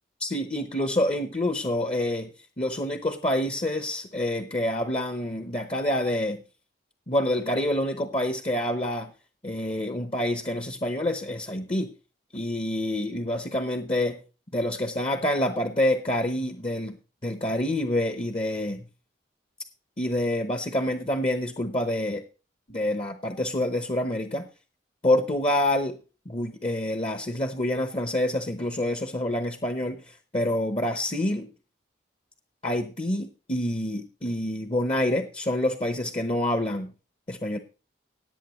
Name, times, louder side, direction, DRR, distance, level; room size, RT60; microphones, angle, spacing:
voice 1, 0.2-2.3 2.6-6.4 7.1-9.1 9.4-11.9 12.3-14.2 14.5-17.0 17.2-18.8 20.0-22.2 22.7-24.5 25.0-26.0 26.3-31.5 32.6-36.9 37.3-37.6, left 1 dB, 30° left, 8 dB, 0.9 m, -27 dB
17.5 x 8.7 x 3.1 m, 0.33 s
head